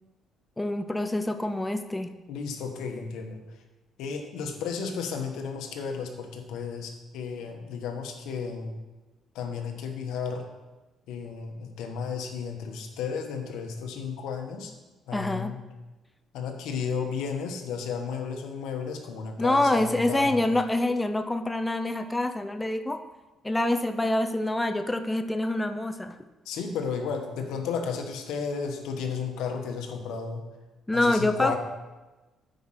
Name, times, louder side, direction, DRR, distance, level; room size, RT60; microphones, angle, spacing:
voice 1, 0.6-2.2 15.1-15.5 19.4-23.0 23.4-26.2 30.9-31.6, left 1 dB, 10° left, 8 dB, 0.5 m, -26 dB
voice 2, 2.3-3.4 4.0-8.7 9.3-10.4 11.1-14.7 15.1-15.6 16.3-20.5 26.4-30.4 30.9-31.6, left 6 dB, 85° left, 4 dB, 1.2 m, -33 dB
9.2 x 5.0 x 5.8 m, 1.1 s
cardioid pair, 100°, 0 cm